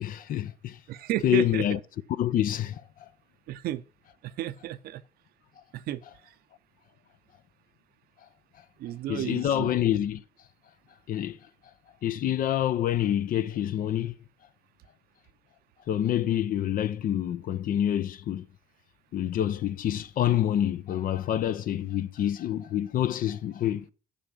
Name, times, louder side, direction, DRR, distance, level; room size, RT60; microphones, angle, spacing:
voice 1, 0.0-0.8 1.2-1.8 2.2-2.8 9.1-10.2 11.1-11.4 12.0-14.1 15.9-18.5 19.1-23.9, left 11 dB, 55° left, 0.7 m, -27 dB
voice 2, 0.9-1.7 3.5-3.8 4.2-5.0 5.7-6.3 8.8-9.7, right 14 dB, 65° right, 0.6 m, -33 dB
10.0 x 5.8 x 6.1 m
supercardioid pair, 70°, 17 cm